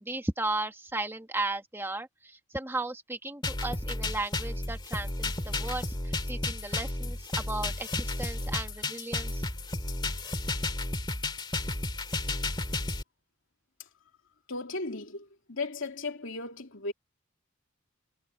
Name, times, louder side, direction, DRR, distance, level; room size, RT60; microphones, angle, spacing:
voice 1, 0.0-9.4, right 2 dB, 10° right, 1.5 m, -35 dB
sound 1, 3.4-13.0, left 2 dB, 20° left, 2.2 m, -32 dB
voice 2, 14.5-16.9, left 3 dB, 65° left, 2.9 m, -36 dB
head